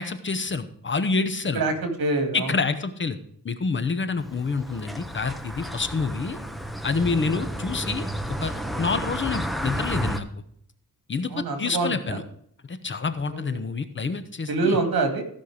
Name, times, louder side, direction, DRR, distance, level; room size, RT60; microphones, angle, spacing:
voice 1, 0.0-1.6 2.3-3.2 3.4-6.4 6.8-8.1 8.4-8.5 8.8-10.3 11.1-12.2 12.7-14.8, left 4 dB, 30° left, 10 dB, 0.8 m, -27 dB
voice 2, 1.5-2.5 7.3-7.4 11.3-12.2 13.3-13.4 14.5-15.2, right 3 dB, 75° right, 6 dB, 2.3 m, -25 dB
sound 1, 4.2-10.2, equal, ahead, 0.6 m, -32 dB
15.0 x 5.5 x 4.9 m, 0.67 s
wide cardioid pair, 160°, 36 cm